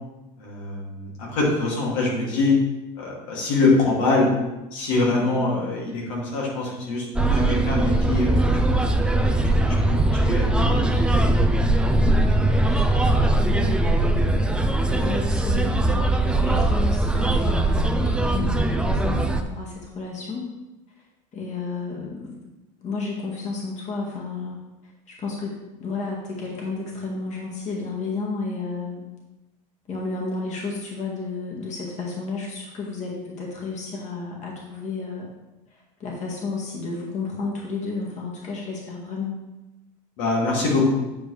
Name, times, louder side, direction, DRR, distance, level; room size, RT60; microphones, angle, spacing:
voice 1, 0.4-2.6 3.0-4.3 4.7-11.0 40.2-40.9, left 3 dB, 85° left, -4 dB, 2.8 m, -24 dB
sound 1, 7.2-19.4, right 2 dB, 5° right, 0.5 m, -20 dB
voice 2, 10.6-11.0 12.6-20.5 21.3-22.3 22.8-24.6 25.1-29.1 29.9-35.3 35.7-39.4, left 4 dB, 45° left, -2 dB, 2.0 m, -32 dB
9.5 x 5.1 x 3.4 m, 1.0 s
supercardioid pair, 100°, 17 cm